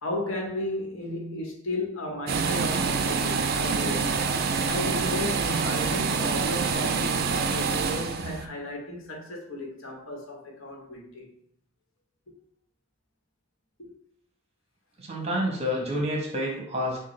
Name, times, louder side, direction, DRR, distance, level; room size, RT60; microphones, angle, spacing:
voice 1, 0.0-4.2 4.7-11.4 13.8-13.9, left 1 dB, 80° left, 1.0 m, -34 dB
sound 1, 2.3-8.5, right 5 dB, 45° right, 0.4 m, -26 dB
voice 2, 15.0-17.0, equal, 30° right, 1.0 m, -28 dB
6.3 x 2.1 x 3.2 m
head